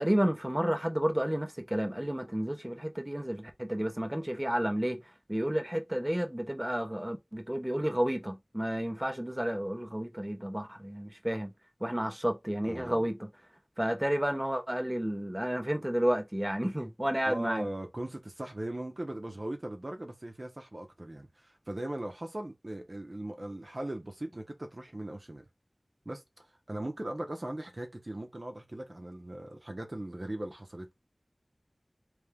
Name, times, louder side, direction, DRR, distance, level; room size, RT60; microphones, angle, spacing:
voice 1, 0.0-5.0 5.3-11.5 11.8-13.2 13.8-17.6, equal, 15° right, 0.9 m, -31 dB
voice 2, 12.6-13.1 17.2-25.5 26.0-30.9, right 1 dB, 50° right, 0.9 m, -39 dB
3.5 x 3.4 x 3.5 m
wide cardioid pair, 45°, 0 cm